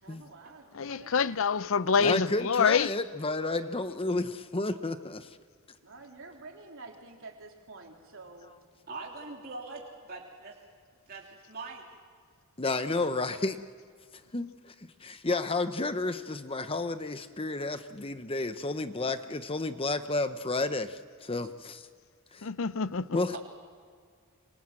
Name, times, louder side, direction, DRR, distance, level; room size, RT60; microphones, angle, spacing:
voice 1, 0.0-1.4 5.8-8.6, right 3 dB, 65° right, 3.9 m, -49 dB
voice 2, 0.7-3.0 22.4-23.2, left 5 dB, 65° left, 0.6 m, -26 dB
voice 3, 2.0-5.3 12.6-13.6 14.3-14.7 15.0-21.9 22.3-22.5 23.1-23.4, left 2 dB, 25° left, 0.9 m, -31 dB
voice 4, 8.9-10.5 11.1-11.8 21.4-21.5, right 3 dB, 45° right, 3.2 m, -42 dB
26.5 x 26.0 x 7.6 m
head